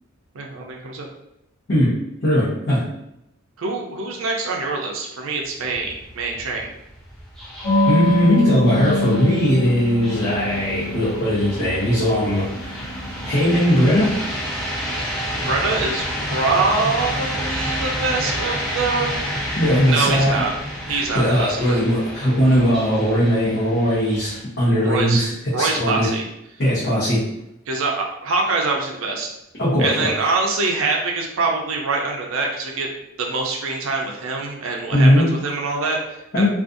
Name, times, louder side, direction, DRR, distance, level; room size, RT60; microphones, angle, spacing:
voice 1, 0.3-1.1 3.6-6.7 14.9-15.1 15.3-16.0 16.3-19.1 19.9-20.5 20.9-21.8 24.8-25.2 25.5-26.3 27.7-29.3 29.8-32.9 33.2-36.5, right 3 dB, 70° right, 0 dB, 0.5 m, -24 dB
voice 2, 2.2-2.8 7.9-12.8 13.2-14.1 19.6-20.4 20.9-25.3 25.6-26.1 26.6-27.2 29.6-30.1 34.9-35.3 36.3-36.5, equal, 55° left, -10 dB, 0.8 m, -19 dB
sound 1, 5.4-24.4, equal, ahead, 0.4 m, -30 dB
sound 2, 7.6-13.8, left 1 dB, 80° left, 1.2 m, -26 dB
2.5 x 2.3 x 2.5 m, 0.84 s
head